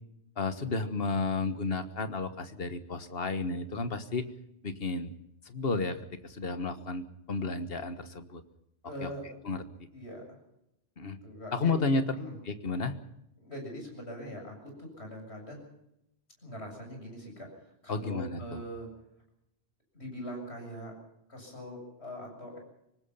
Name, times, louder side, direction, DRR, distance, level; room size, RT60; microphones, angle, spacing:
voice 1, 0.4-4.3 4.6-5.1 5.4-8.4 9.0-9.1 9.4-9.6 11.0-11.2 11.5-12.0 12.4-13.0 17.9-18.6, left 3 dB, 60° left, 10 dB, 1.7 m, -32 dB
voice 2, 8.8-9.3 9.9-10.4 11.2-11.8 12.1-12.3 13.4-15.6 16.4-18.9 19.9-20.9 21.3-22.6, equal, 75° left, 2 dB, 7.8 m, -42 dB
25.0 x 19.0 x 5.6 m, 0.82 s
omnidirectional pair, 1.1 m